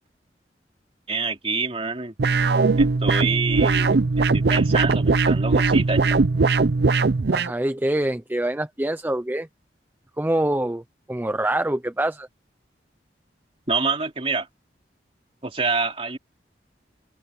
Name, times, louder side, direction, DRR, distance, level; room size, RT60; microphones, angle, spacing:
voice 1, 1.1-2.1 2.7-6.1 13.7-14.5 15.4-16.2, right 4 dB, 35° right, 3.0 m, -27 dB
sound 1, 2.2-7.5, right 3 dB, 65° right, 0.6 m, -20 dB
voice 2, 7.3-9.5 10.2-10.8 11.1-12.3, right 1 dB, 10° right, 0.5 m, -25 dB
head